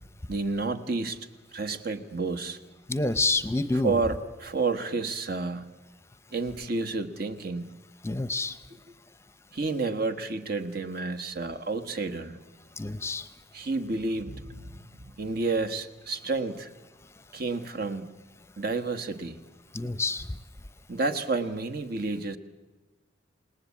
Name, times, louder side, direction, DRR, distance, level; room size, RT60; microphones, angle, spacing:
voice 1, 0.3-2.6 3.8-5.7 6.3-7.7 8.9-9.0 9.5-12.4 13.5-16.7 17.3-18.1 18.6-19.4 20.9-22.4, right 3 dB, 55° right, 8 dB, 1.4 m, -30 dB
voice 2, 2.9-3.9 8.0-8.6 12.8-13.3 19.7-20.3, left 2 dB, 15° left, 12 dB, 0.8 m, -27 dB
28.0 x 19.0 x 8.5 m, 1.2 s
head